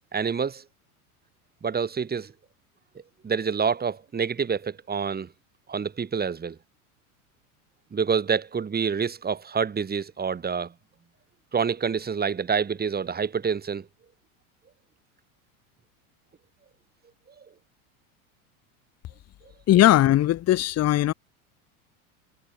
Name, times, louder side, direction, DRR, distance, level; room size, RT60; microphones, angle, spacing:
voice 1, 0.1-0.6 1.6-2.3 3.2-5.3 5.7-6.6 7.9-10.7 11.5-13.9, right 6 dB, 20° right, 5.9 m, -27 dB
voice 2, 19.7-21.1, left 14 dB, 35° left, 1.4 m, -19 dB
hypercardioid pair, 105°, 43 cm